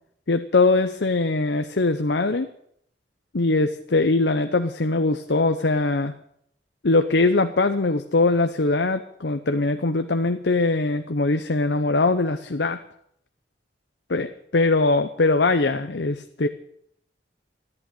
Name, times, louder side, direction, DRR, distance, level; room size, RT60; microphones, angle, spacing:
voice 1, 0.3-2.5 3.3-6.1 6.8-12.8 14.1-16.5, left 3 dB, 75° left, 8 dB, 0.8 m, -21 dB
14.5 x 11.0 x 9.1 m, 0.71 s
head